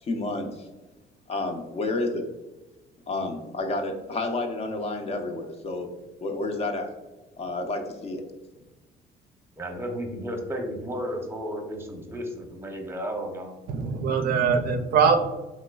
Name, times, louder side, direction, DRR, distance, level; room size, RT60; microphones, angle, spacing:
voice 1, 0.0-0.7 1.3-2.2 3.1-5.9 6.2-6.9 7.4-8.2, left 2 dB, 40° left, 5 dB, 0.5 m, -30 dB
voice 2, 9.6-13.5, equal, 15° right, 2 dB, 0.7 m, -33 dB
voice 3, 13.7-15.2, right 6 dB, 65° right, 6 dB, 0.4 m, -22 dB
3.1 x 3.0 x 2.2 m, 1.1 s
cardioid pair, 110°, 17 cm